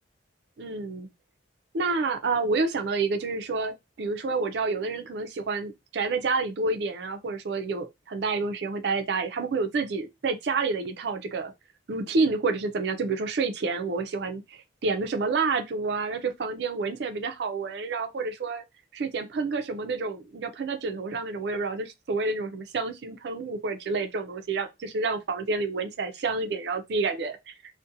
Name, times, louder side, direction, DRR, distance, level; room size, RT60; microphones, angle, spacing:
voice 1, 0.6-1.1 1.7-11.5 11.9-18.6 18.9-27.5, right 4 dB, 60° right, 0.4 m, -29 dB
2.5 x 2.1 x 2.6 m
head